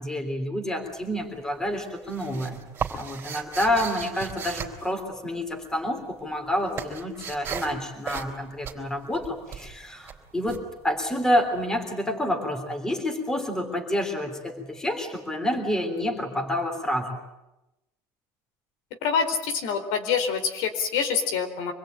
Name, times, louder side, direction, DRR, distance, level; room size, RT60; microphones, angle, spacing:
voice 1, 0.0-2.6 2.9-17.2, left 1 dB, 5° left, 5 dB, 3.4 m, -28 dB
sound 1, 0.8-1.4 1.7-5.7 6.0-11.6, right 7 dB, 25° right, 3.8 m, -36 dB
voice 2, 19.0-21.7, left 6 dB, 75° left, 6 dB, 4.3 m, -26 dB
26.0 x 21.5 x 9.0 m, 0.94 s
cardioid pair, 160°, 8 cm